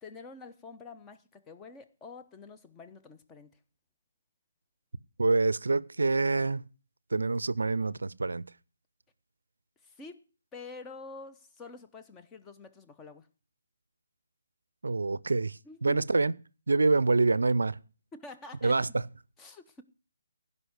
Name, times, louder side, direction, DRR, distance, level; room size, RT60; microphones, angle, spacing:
voice 1, 0.0-3.6 9.8-10.2 10.5-13.3 15.6-16.0 18.1-18.9 19.4-19.8, left 3 dB, 15° left, 0.9 m, -47 dB
voice 2, 5.2-6.6 7.1-8.5 14.8-16.4 16.7-17.8 18.6-18.9, right 3 dB, 75° right, 0.5 m, -26 dB
16.0 x 5.6 x 8.1 m
figure-of-eight pair, 145°, 0 cm